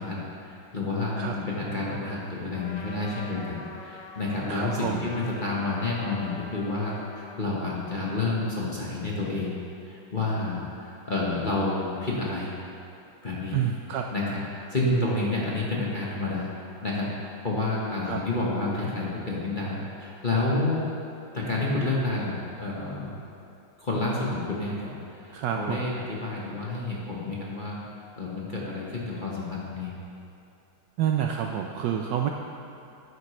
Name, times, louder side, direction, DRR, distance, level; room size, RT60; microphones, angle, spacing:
voice 1, 0.0-9.6 9.8-12.5 13.2-13.6 14.1-16.5 16.8-20.9 21.3-23.1 23.8-24.9 25.2-27.8 28.2-29.9, left 2 dB, 30° left, -5 dB, 1.1 m, -29 dB
Trumpet, 2.5-7.4, left 4 dB, 65° left, 0.7 m, -44 dB
voice 2, 4.5-5.0 13.5-14.1 14.9-15.1 18.1-18.2 25.3-25.8 31.0-32.3, right 9 dB, 75° right, 3 dB, 1.0 m, -28 dB
13.0 x 9.8 x 3.2 m, 2.7 s
omnidirectional pair, 2.3 m